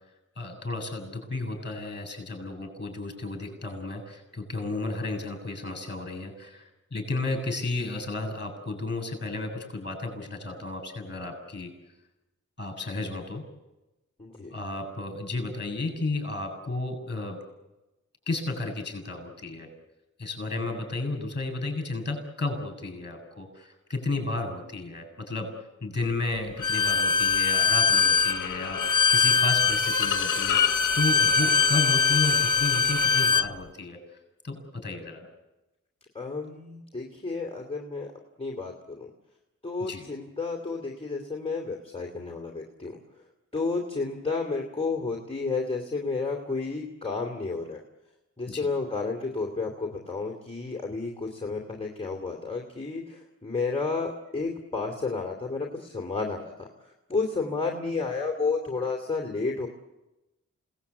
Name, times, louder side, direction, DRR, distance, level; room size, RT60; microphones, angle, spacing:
voice 1, 0.4-11.7 12.6-13.4 14.5-17.4 18.3-19.7 20.2-25.5 25.8-34.0 34.4-35.3 39.8-40.1 48.5-48.7, left 2 dB, 35° left, 5 dB, 7.2 m, -33 dB
voice 2, 14.2-14.5 36.1-38.1 38.4-39.1 39.6-43.0 43.5-47.8 48.4-59.7, left 4 dB, 20° left, 2 dB, 2.7 m, -31 dB
Bowed string instrument, 26.6-33.5, left 5 dB, 80° left, 0.8 m, -22 dB
29.0 x 18.5 x 8.4 m, 1.0 s
wide cardioid pair, 100°, 30 cm